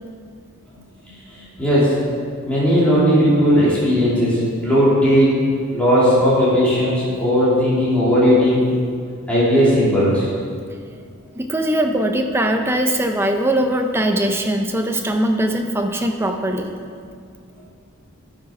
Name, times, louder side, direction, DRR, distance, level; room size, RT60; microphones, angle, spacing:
voice 1, 1.6-1.9 2.4-5.4 5.7-8.6 9.3-10.3, equal, 5° left, -10 dB, 2.9 m, -16 dB
voice 2, 11.4-16.7, right 1 dB, 10° right, 4 dB, 0.6 m, -21 dB
11.5 x 6.4 x 5.0 m, 2.1 s
head